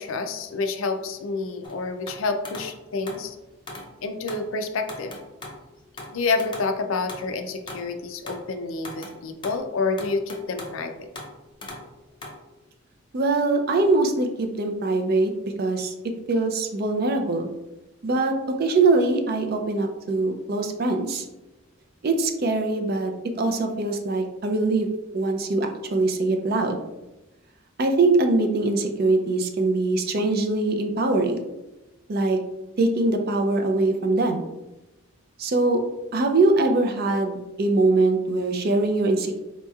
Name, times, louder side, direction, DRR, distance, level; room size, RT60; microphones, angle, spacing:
voice 1, 0.0-3.4 4.0-5.1 6.1-11.1, left 3 dB, 75° left, 7 dB, 0.4 m, -28 dB
sound 1, 1.6-3.3 3.7-3.9 4.3-4.5 4.9-5.6 6.0-7.9 8.3-8.6 8.8-9.6 10.0-10.8 11.1-11.4 11.6-11.9 12.2-12.3, left 2 dB, 25° left, 0.5 m, -39 dB
voice 2, 13.1-15.9 16.3-17.5 18.0-21.2 22.0-23.1 23.4-24.9 25.1-26.8 27.8-31.4 32.1-32.4 32.8-34.4 35.4-35.8 36.1-39.4, right 2 dB, 45° right, 5 dB, 0.4 m, -22 dB
4.2 x 2.9 x 2.3 m, 1.0 s
head